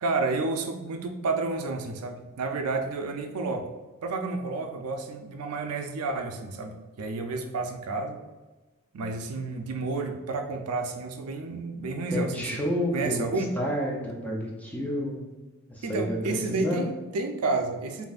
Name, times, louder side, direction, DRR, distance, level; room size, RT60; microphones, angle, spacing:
voice 1, 0.0-3.7 4.0-8.2 8.9-12.6 12.9-13.5 15.8-18.1, right 3 dB, 90° right, 5 dB, 0.5 m, -30 dB
voice 2, 12.1-15.2 15.7-16.8, equal, 5° left, -2 dB, 0.6 m, -30 dB
5.0 x 2.7 x 2.4 m, 1.2 s
head